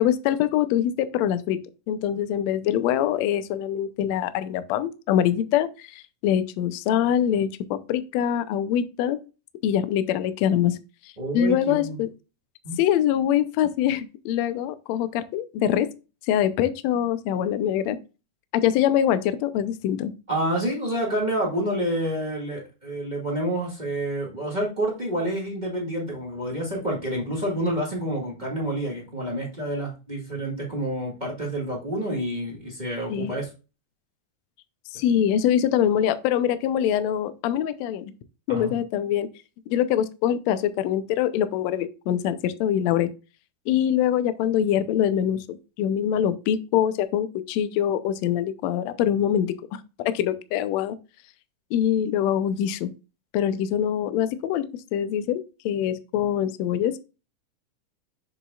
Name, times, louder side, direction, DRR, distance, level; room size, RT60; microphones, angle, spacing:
voice 1, 0.0-1.6 1.9-9.2 9.6-10.8 11.3-12.1 12.8-15.9 16.3-18.0 18.5-20.1 33.1-33.3 34.9-38.1 38.5-39.3 39.7-43.1 43.7-49.5 50.0-51.0 51.7-52.9 53.3-54.6 54.9-57.0, left 10 dB, 80° left, 12 dB, 1.6 m, -24 dB
voice 2, 11.2-12.0 12.6-12.8 20.3-33.5 38.5-38.7, right 1 dB, 20° right, -1 dB, 1.4 m, -28 dB
7.1 x 7.0 x 2.4 m, 0.30 s
omnidirectional pair, 3.8 m